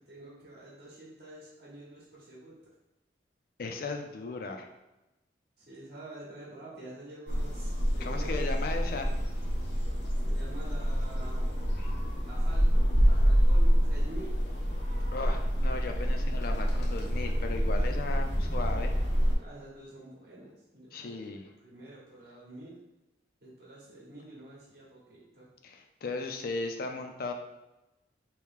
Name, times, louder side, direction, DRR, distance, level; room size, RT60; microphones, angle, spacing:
voice 1, 0.0-2.6 5.6-8.6 10.2-11.5 12.2-14.5 19.4-22.8 23.4-25.5, right 1 dB, 55° right, -6 dB, 0.9 m, -48 dB
voice 2, 3.6-4.7 8.0-9.2 11.8-11.9 15.1-19.0 20.9-21.4 25.6-27.3, left 3 dB, 50° left, 4 dB, 0.4 m, -36 dB
sound 1, 7.3-19.3, equal, 80° left, 0.7 m, -27 dB
3.0 x 2.7 x 3.6 m, 0.99 s
head